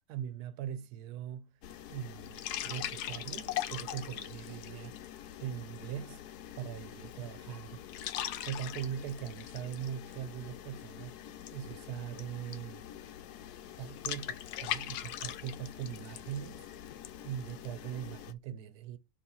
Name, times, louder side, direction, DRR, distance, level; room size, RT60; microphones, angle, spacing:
voice 1, 0.1-1.6 1.9-5.0 5.4-6.2 6.6-8.1 8.5-11.2 11.5-12.9 13.8-16.7 17.1-19.0, right 10 dB, 80° right, 1.1 m, -41 dB
sound 1, 1.6-18.3, left 12 dB, 80° left, 1.1 m, -42 dB
6.8 x 2.8 x 5.4 m
omnidirectional pair, 1.7 m